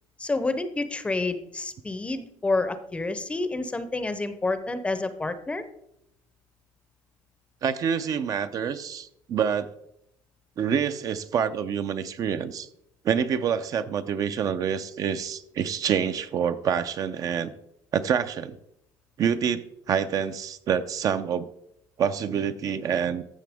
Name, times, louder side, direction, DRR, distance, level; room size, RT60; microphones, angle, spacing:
voice 1, 0.2-5.6, left 3 dB, 15° left, 11 dB, 0.6 m, -29 dB
voice 2, 7.6-9.7 10.6-12.7 13.0-17.5 17.9-18.6 19.2-21.5 22.0-23.2, right 7 dB, 45° right, 11 dB, 0.5 m, -27 dB
13.5 x 6.6 x 3.5 m, 0.78 s
cardioid pair, 140°, 9 cm